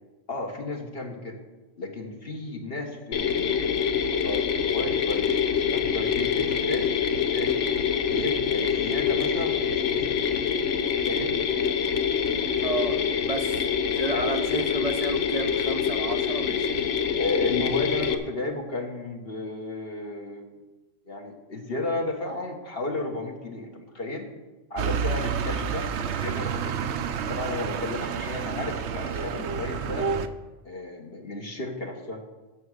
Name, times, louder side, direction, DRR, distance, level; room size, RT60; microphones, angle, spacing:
voice 1, 0.3-1.4 1.8-7.5 8.1-10.7 11.1-11.3 14.1-14.3 17.2-20.5 21.0-24.3 24.7-27.0 27.3-30.1 30.6-32.2, left 2 dB, 55° left, 1.5 m, -33 dB
Mechanisms, 3.1-18.1, left 7 dB, 80° left, 1.1 m, -25 dB
voice 2, 12.6-17.0, right 3 dB, 40° right, 0.7 m, -32 dB
sound 1, 24.8-30.3, right 6 dB, 70° right, 0.9 m, -29 dB
14.0 x 6.2 x 6.4 m
omnidirectional pair, 1.2 m